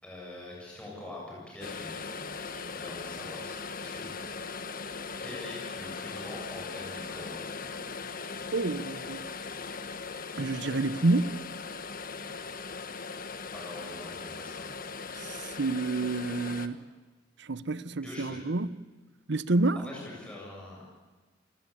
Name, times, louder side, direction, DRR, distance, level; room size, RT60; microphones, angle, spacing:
voice 1, 0.0-4.7 5.2-7.5 13.5-14.7 18.0-18.4 19.7-20.8, left 2 dB, 5° left, 7.6 m, -44 dB
sound 1, 1.6-16.7, left 4 dB, 45° left, 1.5 m, -39 dB
voice 2, 8.5-9.2 10.4-11.4 15.1-16.8 17.4-18.7 19.3-19.8, right 2 dB, 65° right, 0.9 m, -28 dB
28.5 x 20.0 x 8.6 m
head